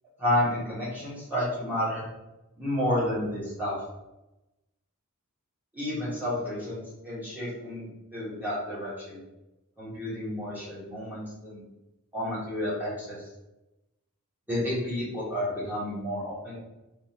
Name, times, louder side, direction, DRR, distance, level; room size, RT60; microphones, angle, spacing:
voice 1, 0.2-2.0 2.6-3.8 5.7-9.2 9.8-11.6 12.1-13.2 14.5-16.6, left 1 dB, 10° right, -9 dB, 1.3 m, -31 dB
3.6 x 2.7 x 2.8 m, 0.94 s
head